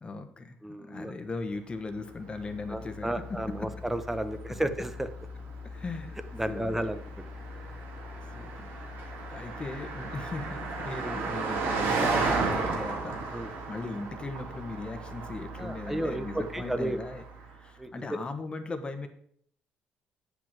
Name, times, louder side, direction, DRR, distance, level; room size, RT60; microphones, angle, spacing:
voice 1, 0.0-3.2 3.6-3.7 5.6-6.1 6.5-6.9 7.4-7.8 8.3-8.7 9.0-19.1, left 3 dB, 30° left, 7 dB, 1.4 m, -39 dB
voice 2, 0.6-1.1 2.7-5.1 6.3-7.0 13.3-13.5 15.6-17.0 17.8-18.2, right 1 dB, 5° right, 10 dB, 0.9 m, -32 dB
Car passing by, 1.8-17.6, right 3 dB, 75° right, 2.1 m, -35 dB
7.9 x 5.2 x 7.4 m, 0.65 s
cardioid pair, 85°, 4 cm